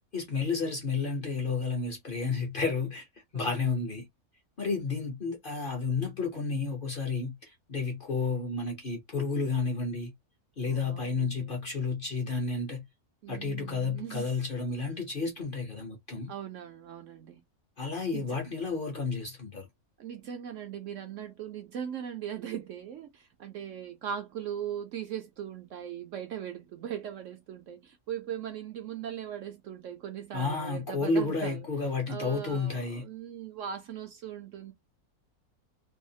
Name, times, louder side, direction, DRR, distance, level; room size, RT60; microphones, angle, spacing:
voice 1, 0.1-3.1 3.3-4.0 4.6-10.1 10.6-12.8 13.3-16.3 17.8-19.7 30.3-33.0, left 4 dB, 45° left, 0.7 m, -31 dB
voice 2, 10.7-11.5 13.2-14.4 16.3-17.4 18.1-18.4 20.0-31.7 32.1-34.7, right 9 dB, 70° right, 0.8 m, -39 dB
2.8 x 2.3 x 2.7 m
omnidirectional pair, 1.6 m